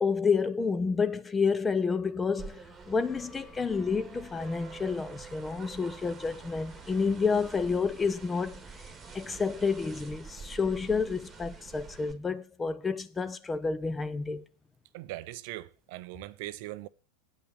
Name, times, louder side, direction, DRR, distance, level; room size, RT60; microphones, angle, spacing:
voice 1, 0.0-8.6 9.1-14.4, left 5 dB, 15° left, 0.6 m, -29 dB
sound 1, 2.4-12.1, right 5 dB, 15° right, 1.6 m, -47 dB
voice 2, 14.9-16.9, right 17 dB, 45° right, 0.5 m, -40 dB
9.1 x 5.6 x 7.9 m
figure-of-eight pair, 90°, 0 cm